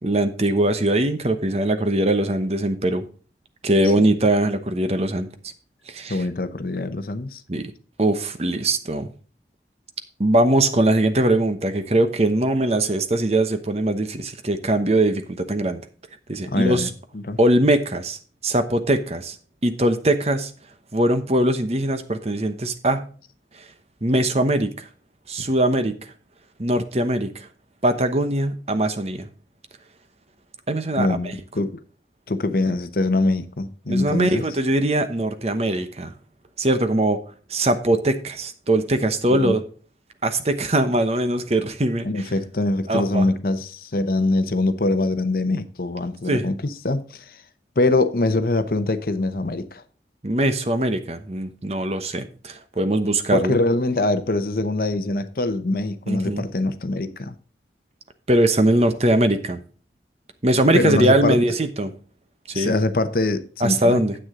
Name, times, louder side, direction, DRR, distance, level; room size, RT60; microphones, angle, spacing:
voice 1, 0.0-3.0 3.6-5.3 5.9-6.2 7.5-7.7 8.0-9.1 10.2-15.8 16.3-16.9 17.4-18.2 18.4-19.3 19.6-20.5 20.9-23.1 23.6-23.7 24.0-24.9 25.3-26.1 26.6-27.5 27.8-29.3 30.7-31.3 33.9-36.1 36.6-37.2 37.5-39.6 40.2-42.3 42.9-43.3 46.3-46.4 50.2-53.6 56.1-56.4 58.3-59.6 60.4-61.9 62.5-62.7 63.6-64.2, right 1 dB, 35° right, 0.9 m, -21 dB
voice 2, 6.1-7.4 16.5-16.9 17.1-17.4 31.0-31.8 32.3-34.4 39.3-39.6 42.0-47.4 47.8-49.8 53.3-57.4 60.7-61.4 62.5-64.0, left 2 dB, 55° left, 0.8 m, -23 dB
9.5 x 7.9 x 3.7 m
head